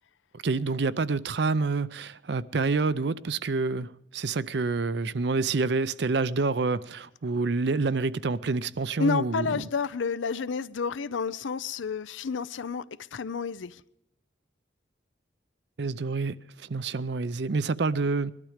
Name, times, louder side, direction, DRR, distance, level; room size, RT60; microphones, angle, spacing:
voice 1, 0.4-9.7 15.8-18.3, right 3 dB, 65° right, 0.5 m, -28 dB
voice 2, 9.0-12.8 13.1-13.8, left 5 dB, 85° left, 0.5 m, -30 dB
20.5 x 12.0 x 5.0 m
head